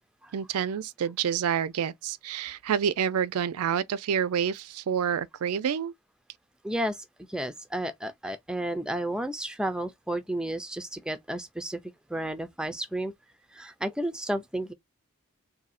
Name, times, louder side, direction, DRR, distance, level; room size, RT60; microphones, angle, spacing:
voice 1, 0.3-5.9, right 8 dB, 85° right, 0.4 m, -28 dB
voice 2, 6.6-7.0 7.3-11.8 12.1-13.1 13.5-14.7, right 1 dB, 5° right, 0.4 m, -32 dB
2.7 x 2.7 x 4.1 m
head